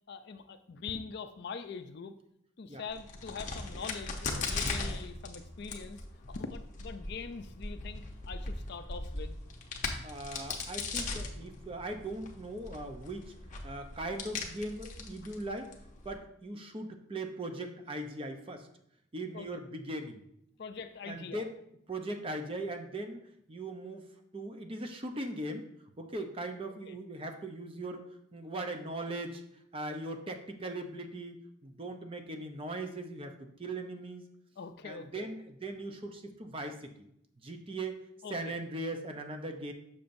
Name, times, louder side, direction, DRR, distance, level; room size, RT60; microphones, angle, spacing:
voice 1, 0.1-2.2 2.6-6.0 6.3-9.4 19.3-19.6 20.6-21.5 26.9-27.0 34.6-35.3 38.2-38.6, left 5 dB, 50° left, 9 dB, 0.4 m, -43 dB
Crack, 2.9-16.1, left 3 dB, 35° left, 0.8 m, -39 dB
voice 2, 10.0-13.3 13.6-15.7 16.0-18.7 19.1-20.2 21.1-21.5 21.9-23.2 23.5-24.1 24.3-25.6 26.0-28.0 28.3-34.3 34.8-36.9 37.4-38.0 38.3-39.7, right 2 dB, 25° right, 5 dB, 0.6 m, -39 dB
6.9 x 6.8 x 2.6 m, 0.74 s
head